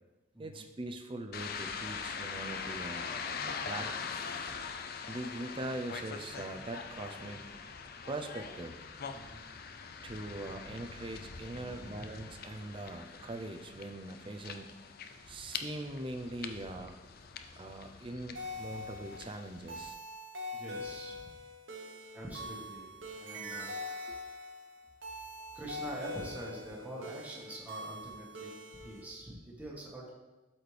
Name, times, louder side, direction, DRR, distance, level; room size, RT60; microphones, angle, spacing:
voice 1, 0.4-3.1 3.4-4.1 5.1-7.4 8.0-8.7 10.0-14.7 15.3-16.9 17.6-20.0 24.1-24.2, right 2 dB, 25° right, 5 dB, 0.5 m, -42 dB
sound 1, 1.3-19.9, left 5 dB, 50° left, 0.5 m, -43 dB
voice 2, 9.1-9.4 11.5-12.1 15.3-15.4 20.5-21.4 22.1-24.4 25.5-30.1, right 1 dB, 10° right, -4 dB, 1.5 m, -45 dB
sound 2, 18.3-29.0, left 1 dB, 70° right, 1.1 m, -43 dB
12.5 x 4.3 x 3.3 m, 1.2 s
head